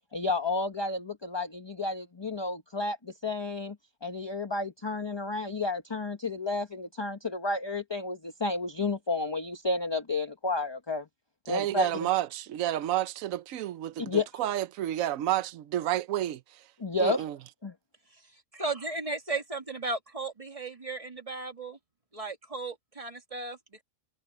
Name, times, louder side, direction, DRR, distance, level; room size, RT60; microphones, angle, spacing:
voice 1, 0.1-3.8 4.0-11.0 11.5-11.9 14.0-14.3 16.8-17.2 17.6-17.7, left 3 dB, 20° left, 1.0 m, -31 dB
voice 2, 11.5-16.7 17.0-17.4, right 13 dB, 80° right, 1.1 m, -30 dB
voice 3, 18.5-21.8 22.1-23.8, right 3 dB, 25° right, 1.9 m, -35 dB
omnidirectional pair, 1.4 m